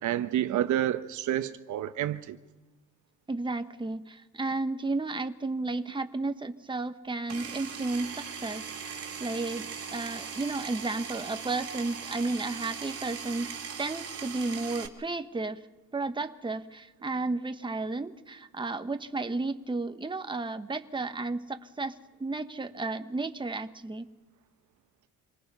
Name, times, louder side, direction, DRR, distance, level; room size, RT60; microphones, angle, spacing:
voice 1, 0.0-2.4 6.2-6.3, right 11 dB, 75° right, 1.1 m, -29 dB
voice 2, 3.3-13.5 13.8-15.6 15.9-21.9 22.2-24.1, right 3 dB, 15° right, 1.2 m, -33 dB
Power tool, 7.3-14.9, right 6 dB, 50° right, 2.7 m, -39 dB
27.0 x 19.5 x 5.5 m
cardioid pair, 90°, 30 cm